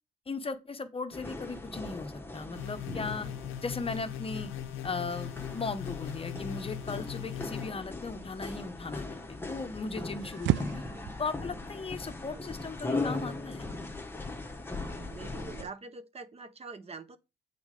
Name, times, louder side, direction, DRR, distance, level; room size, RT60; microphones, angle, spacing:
voice 1, 0.3-3.3 3.6-4.5 4.8-10.8 11.2-13.7, left 4 dB, 30° left, 0.8 m, -37 dB
sound 1, 1.1-15.6, left 2 dB, 10° left, 1.1 m, -39 dB
sound 2, 2.6-7.7, left 10 dB, 85° left, 0.5 m, -40 dB
sound 3, 8.2-15.7, right 12 dB, 70° right, 0.4 m, -38 dB
voice 2, 15.1-17.2, right 4 dB, 30° right, 0.6 m, -45 dB
7.1 x 4.1 x 4.9 m
cardioid pair, 90°, 20 cm